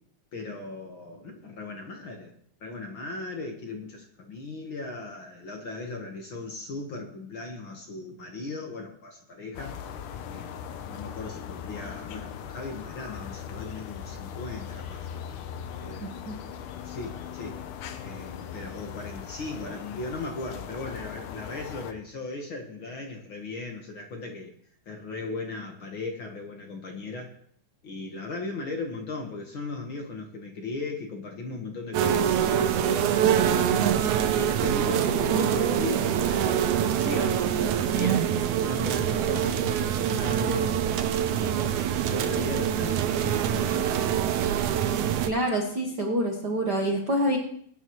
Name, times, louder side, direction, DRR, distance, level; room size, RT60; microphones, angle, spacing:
voice 1, 0.3-2.3 2.6-9.7 10.3-15.1 15.8-16.2 16.8-17.6 18.0-24.5 24.8-27.3 27.8-33.7 34.3-36.7 37.0-40.8 41.3-44.1, left 3 dB, 50° left, 2 dB, 1.8 m, -37 dB
sound 1, 9.5-21.9, left 8 dB, 90° left, 2.4 m, -39 dB
voice 2, 16.0-16.3 45.2-47.4, right 1 dB, 50° right, 0 dB, 1.3 m, -27 dB
sound 2, 31.9-45.3, right 9 dB, 75° right, 2.2 m, -25 dB
21.5 x 9.7 x 3.1 m, 0.63 s
omnidirectional pair, 3.5 m